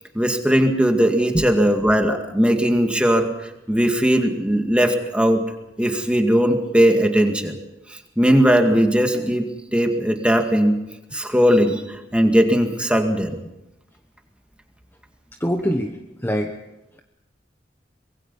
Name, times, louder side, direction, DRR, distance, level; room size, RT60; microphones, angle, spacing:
voice 1, 0.1-3.3 3.7-5.4 5.8-7.6 7.9-10.8 11.1-13.4, equal, 5° right, 4 dB, 2.1 m, -19 dB
voice 2, 15.4-16.5, equal, 10° left, 3 dB, 1.2 m, -23 dB
24.5 x 22.0 x 5.5 m, 0.94 s
head